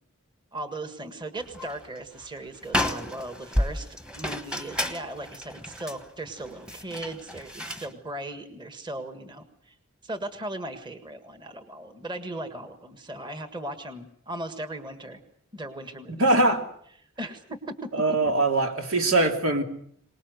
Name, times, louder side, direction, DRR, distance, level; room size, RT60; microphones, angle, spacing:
voice 1, 0.5-3.9 4.1-9.8 10.0-15.2 15.5-16.3 17.2-17.9, right 1 dB, 20° right, 8 dB, 1.7 m, -37 dB
sound 1, 1.4-1.9 2.2-2.3 2.6-7.9, left 1 dB, 5° right, 1.4 m, -31 dB
voice 2, 16.1-16.7 17.9-19.6, right 2 dB, 80° right, 5 dB, 3.0 m, -22 dB
24.5 x 20.0 x 8.0 m, 0.65 s
head